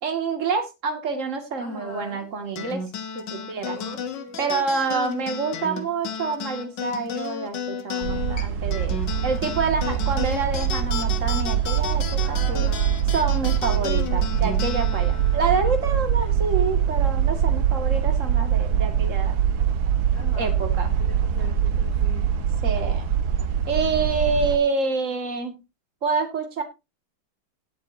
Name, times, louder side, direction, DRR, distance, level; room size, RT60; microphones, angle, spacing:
voice 1, 0.0-2.8 3.1-3.8 4.4-12.7 13.1-19.4 20.4-20.9 22.6-23.1 23.7-25.5 26.0-26.6, right 4 dB, 40° right, 6 dB, 2.4 m, -27 dB
voice 2, 1.6-2.3 3.7-4.7 12.2-13.1 13.7-14.1 20.1-22.3, left 1 dB, 40° left, 1 dB, 3.3 m, -41 dB
sound 1, 2.6-17.3, left 6 dB, 60° left, 1.8 m, -33 dB
sound 2, 8.0-24.6, right 9 dB, 55° right, 1.4 m, -23 dB
18.0 x 7.8 x 2.7 m, 0.24 s
omnidirectional pair, 2.2 m